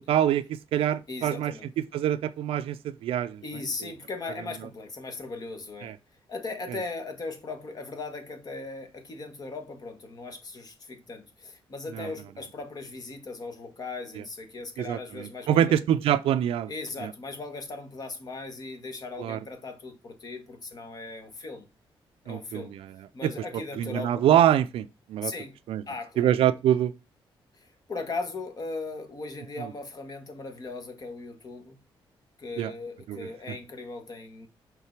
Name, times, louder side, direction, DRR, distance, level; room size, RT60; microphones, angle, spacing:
voice 1, 0.1-1.5 1.9-3.4 3.8-3.9 5.8-5.9 11.9-12.1 14.8-16.7 17.0-17.1 19.2-19.4 22.3-22.9 23.2-23.3 23.8-25.3 25.7-25.8 26.2-26.9 32.6-32.7 33.1-33.3, right 11 dB, 80° right, 0.4 m, -25 dB
voice 2, 1.1-1.7 3.4-5.9 6.3-15.8 16.7-21.7 22.2-22.8 23.1-24.2 25.2-25.6 25.9-26.3 27.6-31.8 32.4-34.5, left 3 dB, 45° left, 1.6 m, -38 dB
5.8 x 3.8 x 4.5 m
cardioid pair, 105°, 9 cm